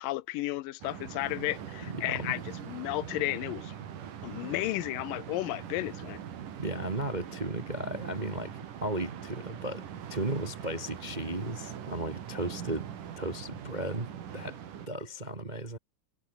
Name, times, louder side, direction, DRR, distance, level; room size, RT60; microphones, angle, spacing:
voice 1, 0.0-3.7 4.2-6.2, left 18 dB, 85° left, 2.4 m, -33 dB
sound 1, 0.8-14.9, right 9 dB, 75° right, 3.8 m, -42 dB
voice 2, 1.9-2.4 6.6-12.9 13.2-14.6 14.9-15.8, right 1 dB, 25° right, 1.0 m, -35 dB
omnidirectional pair, 3.8 m